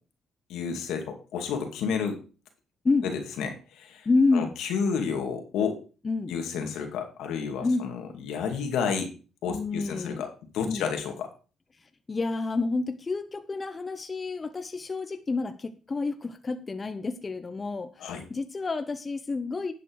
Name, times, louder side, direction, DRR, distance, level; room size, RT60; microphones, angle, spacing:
voice 1, 0.5-2.2 3.0-4.1 4.3-5.8 6.3-9.1 9.4-10.3 10.5-11.3 18.0-18.2, left 6 dB, 85° left, 4 dB, 2.4 m, -31 dB
voice 2, 4.0-4.5 6.0-6.3 7.6-7.9 9.5-10.3 10.6-10.8 12.1-19.7, left 3 dB, 30° left, 9 dB, 0.9 m, -29 dB
11.0 x 7.6 x 4.7 m, 0.36 s
cardioid pair, 90°, 0 cm